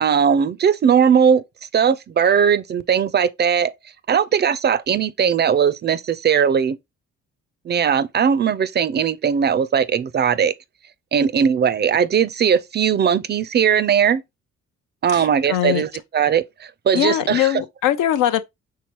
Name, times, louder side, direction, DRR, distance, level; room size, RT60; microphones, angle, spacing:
voice 1, 0.0-1.4 1.7-3.7 4.1-6.8 7.7-10.5 11.1-14.2 15.0-17.6, right 7 dB, 35° right, 0.4 m, -19 dB
voice 2, 15.1-15.8 16.9-18.4, left 12 dB, 90° left, 0.6 m, -21 dB
4.6 x 3.4 x 2.9 m
cardioid pair, 90°, 30 cm